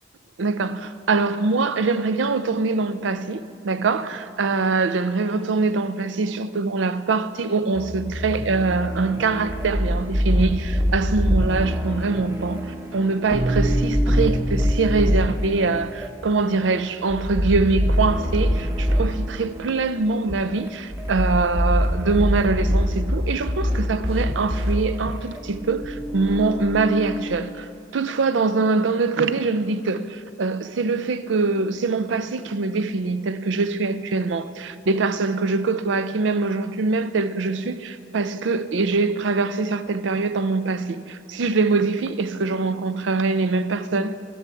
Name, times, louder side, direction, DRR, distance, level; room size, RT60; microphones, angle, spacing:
voice 1, 0.4-44.2, right 3 dB, 80° right, 0.5 m, -23 dB
sound 1, 7.7-27.4, equal, 15° right, 0.9 m, -31 dB
sound 2, 9.5-11.4 13.3-15.2 17.1-19.0 20.9-24.7, equal, 30° right, 1.3 m, -23 dB
13.5 x 10.0 x 4.6 m
head